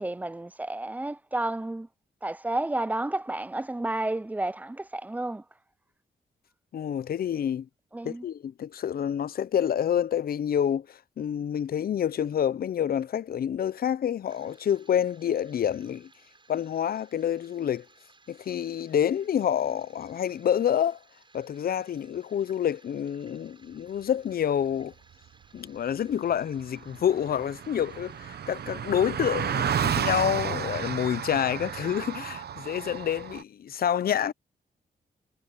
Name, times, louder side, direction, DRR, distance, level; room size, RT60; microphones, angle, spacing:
voice 1, 0.0-1.9 2.2-5.4 7.9-8.2, right 2 dB, 10° right, 0.5 m, -31 dB
voice 2, 6.7-7.7 8.0-16.1 16.5-17.9 18.3-21.0 21.3-24.9 25.5-34.3, left 9 dB, 60° left, 0.5 m, -28 dB
sound 1, 14.3-32.4, right 3 dB, 30° right, 7.5 m, -60 dB
Car passing by, 26.3-26.4 26.6-33.4, right 8 dB, 70° right, 0.9 m, -32 dB
wide cardioid pair, 105°, 17 cm